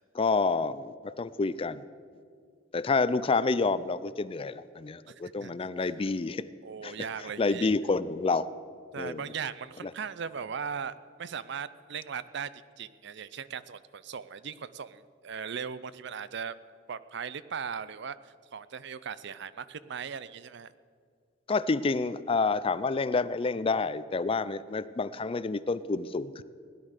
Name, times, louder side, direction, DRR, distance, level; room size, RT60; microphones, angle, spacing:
voice 1, 0.1-1.8 2.7-6.4 6.8-7.1 7.4-8.5 9.0-9.2 9.8-9.9 21.5-26.4, left 4 dB, 30° left, 16 dB, 0.4 m, -28 dB
voice 2, 5.1-5.5 5.8-5.9 6.6-7.7 8.9-10.9 11.2-12.5 12.8-16.5 16.9-20.7, right 6 dB, 65° right, 16 dB, 0.5 m, -38 dB
17.0 x 11.0 x 6.5 m, 2.1 s
head